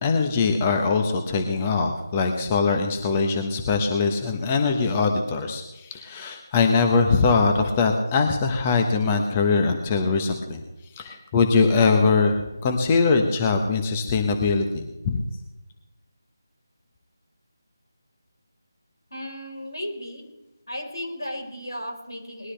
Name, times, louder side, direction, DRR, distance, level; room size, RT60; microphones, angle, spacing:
voice 1, 0.0-10.6 11.0-15.2, left 4 dB, 20° left, 4 dB, 1.2 m, -22 dB
voice 2, 19.1-20.2 20.7-22.5, equal, 90° left, 2 dB, 4.6 m, -34 dB
20.0 x 13.0 x 3.4 m, 1.0 s
figure-of-eight pair, 160°, 2 cm